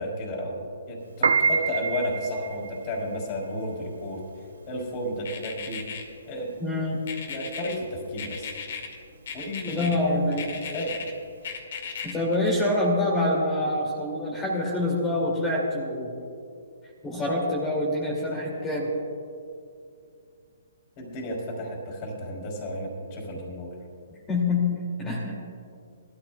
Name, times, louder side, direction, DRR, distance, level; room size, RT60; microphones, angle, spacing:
voice 1, 0.0-4.2 4.7-5.8 6.3-6.5 7.3-8.5 9.3-11.0 21.0-23.7, equal, 35° left, -1 dB, 3.5 m, -33 dB
Piano, 1.1-11.5, right 5 dB, 75° right, 0.7 m, -30 dB
sound 1, 5.3-6.0 7.1-7.8 8.2-8.9 9.3-10.0 10.3-11.1 11.4-12.9, left 6 dB, 60° left, 2.1 m, -36 dB
voice 2, 6.6-7.0 9.7-10.4 12.0-16.1 17.0-18.9 24.3-25.3, left 2 dB, 15° left, -4 dB, 2.4 m, -26 dB
20.5 x 13.5 x 2.3 m, 2.5 s
hypercardioid pair, 135°, 0 cm